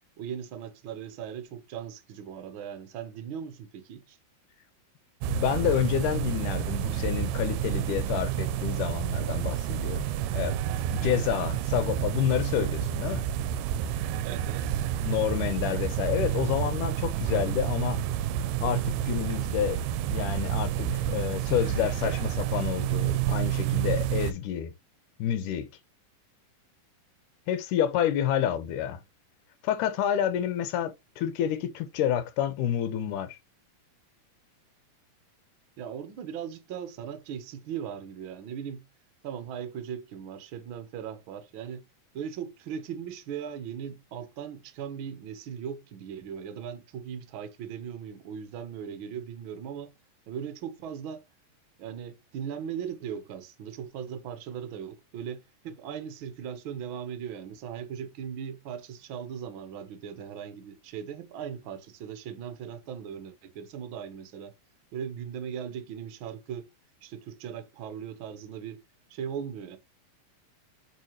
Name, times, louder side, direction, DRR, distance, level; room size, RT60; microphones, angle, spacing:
voice 1, 0.2-4.2 14.2-14.8 35.8-38.8 39.2-41.9 42.1-49.9 50.3-51.2 51.8-64.5 64.9-66.7 67.0-68.8 69.1-69.8, right 8 dB, 70° right, 1.2 m, -38 dB
sound 1, 5.2-24.3, right 11 dB, 85° right, 2.2 m, -29 dB
voice 2, 5.3-10.1 10.3-10.6 10.9-13.3 15.0-18.0 18.6-19.8 20.1-24.7 25.2-25.7 27.5-29.0 29.6-33.4, left 10 dB, 75° left, 2.4 m, -29 dB
8.2 x 3.9 x 3.0 m
omnidirectional pair, 3.8 m